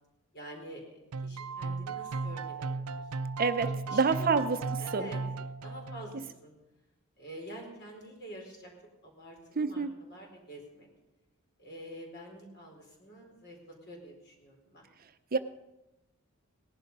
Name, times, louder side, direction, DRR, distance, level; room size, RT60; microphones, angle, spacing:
voice 1, 0.3-3.0 3.9-4.4 4.8-5.2 5.6-6.5 7.2-8.7 9.0-10.9 11.6-14.8, right 1 dB, 50° left, 1 dB, 4.3 m, -47 dB
sound 1, 1.1-6.3, right 4 dB, 85° right, 0.5 m, -36 dB
voice 2, 3.4-4.6 4.9-5.1 9.6-9.9 15.3-15.4, right 4 dB, 40° right, 9 dB, 0.7 m, -27 dB
18.0 x 11.5 x 5.4 m, 0.96 s
head